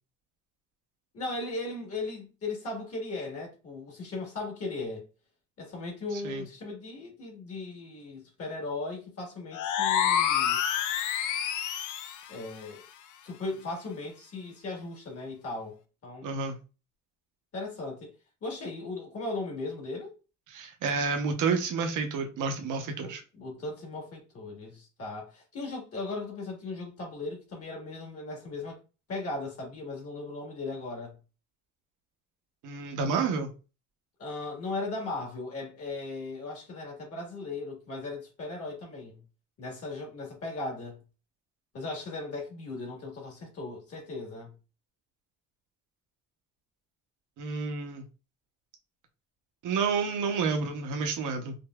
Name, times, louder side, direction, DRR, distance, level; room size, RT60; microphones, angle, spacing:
voice 1, 1.1-5.0 5.6-10.6 12.3-12.8 13.2-16.5 17.5-18.1 18.4-20.1 23.0-28.8 29.1-31.2 34.2-39.2 39.6-41.0 41.7-44.5, left 2 dB, 50° left, 1.5 m, -37 dB
sound 1, 9.5-12.2, left 9 dB, 80° left, 0.6 m, -27 dB
voice 2, 16.2-16.6 20.5-23.2 32.6-33.5 47.4-48.0 49.6-51.6, right 5 dB, 80° right, 0.9 m, -30 dB
5.2 x 2.0 x 2.3 m
cardioid pair, 90°, 30 cm